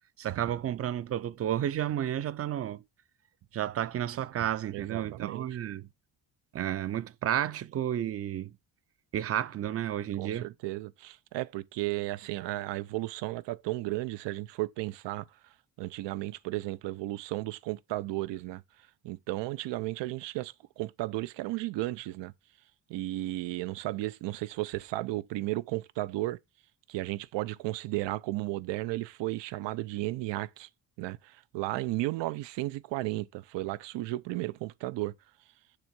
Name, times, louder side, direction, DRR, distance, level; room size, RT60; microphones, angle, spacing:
voice 1, 0.2-2.8 3.5-5.9 6.5-8.5 9.1-10.5, right 11 dB, 35° right, 0.4 m, -31 dB
voice 2, 4.7-5.5 10.2-15.2 15.8-18.6 19.0-22.3 22.9-26.4 26.9-30.7 31.0-35.1, right 17 dB, 85° right, 0.6 m, -34 dB
6.7 x 3.5 x 6.0 m
cardioid pair, 145°, 42 cm